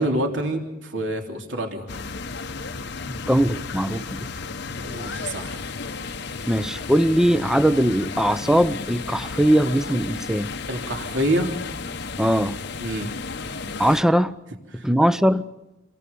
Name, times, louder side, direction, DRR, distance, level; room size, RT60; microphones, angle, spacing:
voice 1, 0.0-1.9 4.8-5.7 10.7-11.5 12.8-13.1 14.7-14.9, right 1 dB, 65° right, 3.4 m, -26 dB
sound 1, 1.9-14.0, left 4 dB, 60° left, 1.0 m, -33 dB
voice 2, 3.1-4.3 6.5-10.5 12.2-12.6 13.8-14.3 14.8-15.4, equal, 5° right, 0.7 m, -20 dB
29.5 x 23.0 x 5.4 m
head